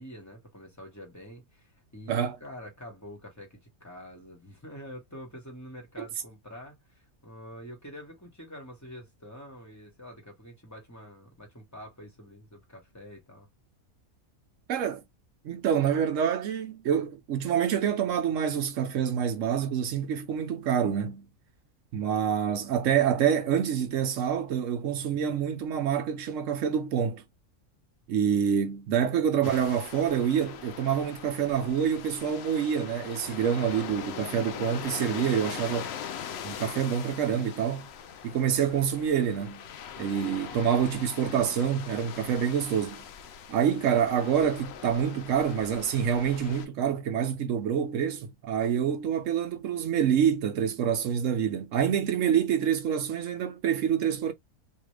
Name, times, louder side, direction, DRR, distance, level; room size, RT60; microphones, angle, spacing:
voice 1, 0.0-13.5 29.0-29.3, equal, 15° left, 1.1 m, -46 dB
voice 2, 14.7-15.0 15.4-21.3 21.9-27.2 28.1-35.9 36.4-37.9 38.2-39.6 40.0-43.0 43.5-54.3, right 8 dB, 65° right, 0.9 m, -27 dB
sound 1, 29.4-46.7, left 8 dB, 70° left, 0.6 m, -41 dB
2.8 x 2.4 x 3.1 m
omnidirectional pair, 1.5 m